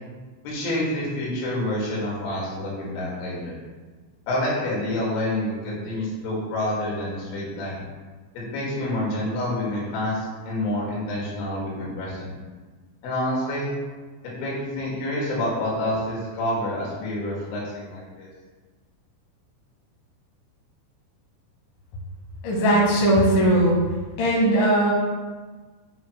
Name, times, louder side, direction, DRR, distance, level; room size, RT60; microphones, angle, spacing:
voice 1, 0.4-3.6 4.3-7.8 8.3-12.4 13.0-13.7 14.4-18.3, left 1 dB, 85° left, -6 dB, 4.4 m, -28 dB
voice 2, 22.4-23.8 24.2-24.9, right 1 dB, 60° left, -4 dB, 2.3 m, -19 dB
10.0 x 4.6 x 2.2 m, 1.3 s
omnidirectional pair, 5.6 m